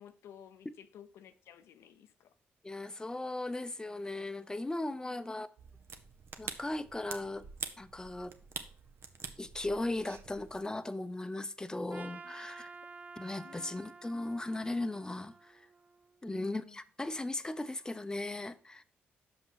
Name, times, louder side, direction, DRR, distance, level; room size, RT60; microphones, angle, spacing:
voice 1, 0.0-2.3 5.0-5.2 12.2-12.4 13.4-13.8 16.2-16.8, left 9 dB, 80° left, 0.6 m, -54 dB
voice 2, 2.6-5.5 6.4-7.5 7.8-8.3 9.4-12.7 13.2-15.7 16.2-18.8, left 2 dB, 15° left, 0.6 m, -37 dB
sound 1, 5.6-10.6, right 5 dB, 60° right, 0.9 m, -46 dB
Trumpet, 11.9-16.2, right 4 dB, 30° right, 0.7 m, -51 dB
6.0 x 5.3 x 5.8 m
supercardioid pair, 60°, 5 cm